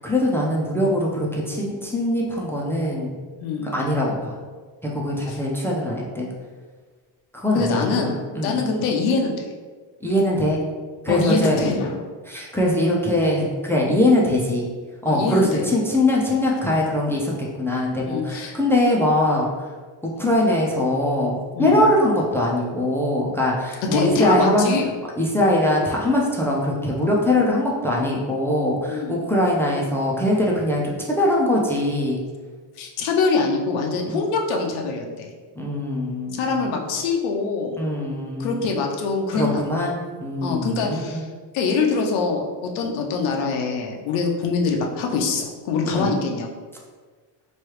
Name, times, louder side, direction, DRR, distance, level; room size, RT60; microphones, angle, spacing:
voice 1, 0.0-3.1 3.7-4.4 4.8-6.3 7.3-8.6 10.0-10.6 11.0-11.7 12.3-14.6 15.0-19.7 20.0-24.7 25.2-32.2 34.1-34.2 35.5-36.5 37.8-38.6 39.3-41.2 45.8-46.1, left 1 dB, 5° left, -3 dB, 0.3 m, -22 dB
voice 2, 3.4-3.7 5.3-5.4 7.5-8.1 8.4-9.3 11.1-12.0 15.0-15.6 18.0-18.6 21.5-21.9 23.9-24.9 28.9-29.1 32.8-35.3 36.3-37.8 38.4-39.6 40.4-41.3 41.5-46.5, left 4 dB, 90° left, 1 dB, 0.6 m, -24 dB
3.1 x 2.3 x 3.0 m, 1.5 s
cardioid pair, 100°, 45 cm